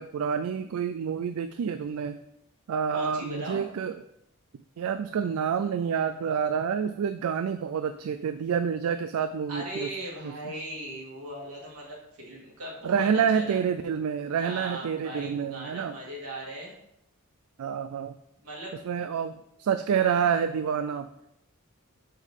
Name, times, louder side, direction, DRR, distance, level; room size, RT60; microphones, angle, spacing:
voice 1, 0.0-2.2 2.7-4.0 4.8-9.9 10.2-10.3 12.8-15.9 17.6-18.2 18.9-19.3 19.6-21.1, right 7 dB, 70° right, 9 dB, 0.3 m, -28 dB
voice 2, 2.9-3.6 9.5-13.1 13.3-13.6 14.4-16.7 18.4-18.7, right 1 dB, 85° right, -3 dB, 2.1 m, -38 dB
6.2 x 5.5 x 3.7 m, 0.80 s
head